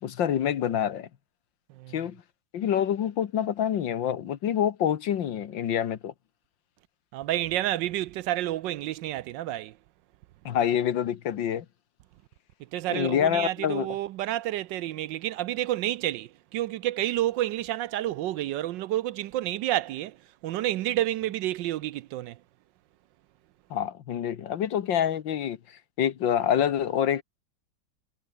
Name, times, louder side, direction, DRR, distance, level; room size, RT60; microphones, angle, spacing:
voice 1, 0.0-1.1 1.9-2.2 2.5-6.1 10.5-11.7 12.9-13.9 23.7-25.6 26.0-27.2, left 9 dB, 70° left, 1.9 m, -26 dB
voice 2, 7.1-9.7 12.7-20.2 20.4-22.4, right 14 dB, 75° right, 1.2 m, -29 dB
omnidirectional pair, 2.1 m